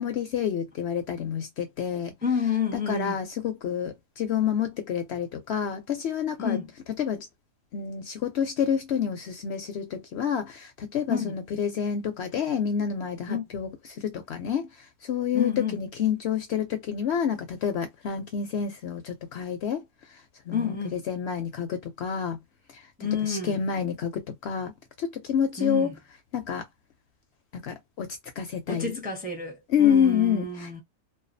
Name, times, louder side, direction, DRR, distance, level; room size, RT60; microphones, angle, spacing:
voice 1, 0.0-2.1 2.7-6.6 7.0-7.3 7.7-14.7 15.0-19.8 20.5-22.4 22.7-22.8 23.2-24.7 25.0-25.9 26.3-26.7 27.5-29.0 29.7-30.8, left 8 dB, 65° left, 0.8 m, -28 dB
voice 2, 2.2-3.2 6.4-6.7 11.1-11.4 13.3-13.4 15.3-15.8 20.5-21.0 23.0-23.6 25.6-25.9 28.7-30.8, left 5 dB, 10° right, 0.6 m, -29 dB
2.4 x 2.3 x 2.5 m
omnidirectional pair, 1.4 m